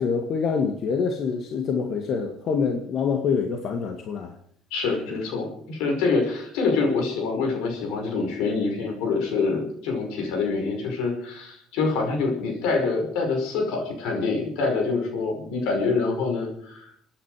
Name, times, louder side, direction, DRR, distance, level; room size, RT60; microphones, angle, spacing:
voice 1, 0.0-4.3, left 5 dB, 60° left, 4 dB, 1.8 m, -26 dB
voice 2, 4.7-17.1, left 4 dB, 85° left, 2 dB, 5.4 m, -26 dB
29.0 x 10.0 x 4.9 m, 0.66 s
supercardioid pair, 90°, 0 cm